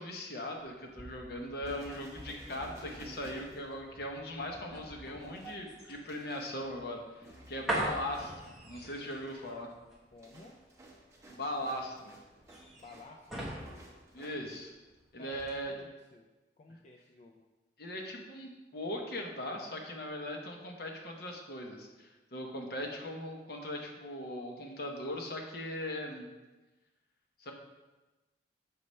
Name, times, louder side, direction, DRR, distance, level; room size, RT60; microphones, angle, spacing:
voice 1, 0.0-9.7 11.3-12.1 14.1-14.7 15.1-15.7 17.8-26.3 27.4-27.5, left 1 dB, 60° left, 1 dB, 0.9 m, -39 dB
sound 1, 0.6-14.9 15.3-15.5, right 1 dB, ahead, 1.1 m, -43 dB
sound 2, 1.6-4.3 5.2-6.6 7.2-7.8 8.1-8.6 9.0-14.6, right 1 dB, 15° right, 1.0 m, -55 dB
voice 2, 10.1-10.6 12.7-13.5 15.2-16.3 16.6-17.4, left 2 dB, 40° left, 1 dB, 0.4 m, -54 dB
6.5 x 5.4 x 3.2 m, 1.1 s
head